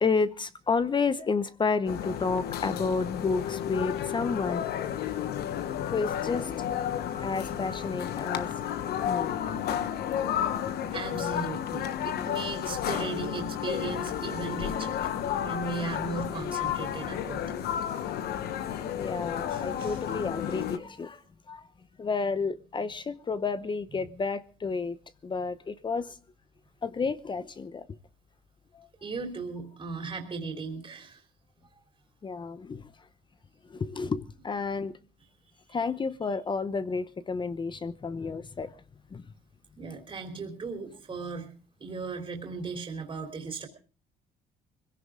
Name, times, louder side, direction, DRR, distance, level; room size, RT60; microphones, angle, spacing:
voice 1, 0.0-5.1 5.8-6.5 7.2-8.5 9.0-9.4 10.1-10.2 10.7-11.2 18.7-21.2 21.5-21.7 22.0-25.0 25.2-26.1 26.8-27.9 28.7-28.9 32.2-32.9 33.7-34.9 35.7-38.7 39.1-39.2, left 4 dB, 30° left, 0.8 m, -31 dB
sound 1, 1.9-20.8, left 10 dB, 70° left, 1.2 m, -32 dB
voice 2, 10.9-15.0 15.4-17.7 19.5-20.0 29.0-31.2 31.7-31.8 35.7-35.8 39.8-41.5 41.8-43.7, right 4 dB, 30° right, 3.3 m, -37 dB
21.5 x 16.0 x 3.7 m
cardioid pair, 110°, 17 cm